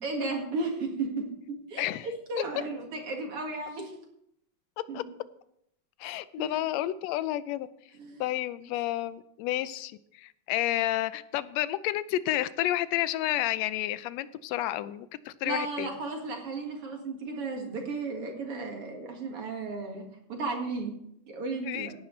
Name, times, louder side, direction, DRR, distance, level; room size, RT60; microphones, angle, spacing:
voice 1, 0.0-3.9 4.9-5.0 6.4-6.6 8.0-8.2 15.4-21.0 21.3-21.9, right 3 dB, 50° right, 1 dB, 2.7 m, -34 dB
voice 2, 6.0-7.7 8.2-15.9 21.7-21.9, left 14 dB, 80° left, 15 dB, 1.6 m, -30 dB
17.5 x 10.0 x 3.2 m, 0.75 s
omnidirectional pair, 3.4 m